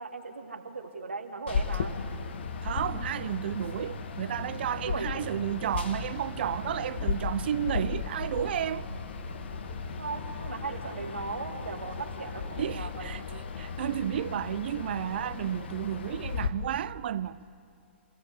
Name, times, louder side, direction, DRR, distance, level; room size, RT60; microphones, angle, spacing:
voice 1, 0.0-1.9 4.8-5.2 10.0-13.4, right 4 dB, 90° right, 2.5 m, -38 dB
sound 1, 1.5-16.5, left 5 dB, 65° left, 1.6 m, -36 dB
voice 2, 2.6-8.9 9.7-9.8 12.6-13.2 13.6-17.5, right 10 dB, 60° right, 0.7 m, -32 dB
sound 2, 2.7-12.9, right 6 dB, 75° right, 1.5 m, -47 dB
27.5 x 17.0 x 8.5 m
hypercardioid pair, 130°, 6 cm